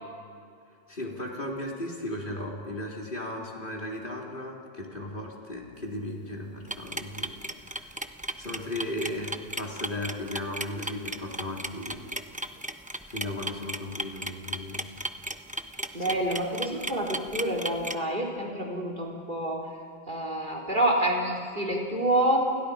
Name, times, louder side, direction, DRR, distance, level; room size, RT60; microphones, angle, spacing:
voice 1, 0.9-7.9 8.4-12.1 13.1-14.9 16.0-16.2, left 1 dB, 55° left, -2 dB, 3.8 m, -36 dB
sound 1, 6.7-17.9, right 1 dB, 10° right, 0.9 m, -35 dB
voice 2, 15.9-19.7 20.1-22.4, right 1 dB, 50° right, -1 dB, 4.5 m, -27 dB
30.0 x 28.5 x 5.1 m, 2.4 s
omnidirectional pair, 1.1 m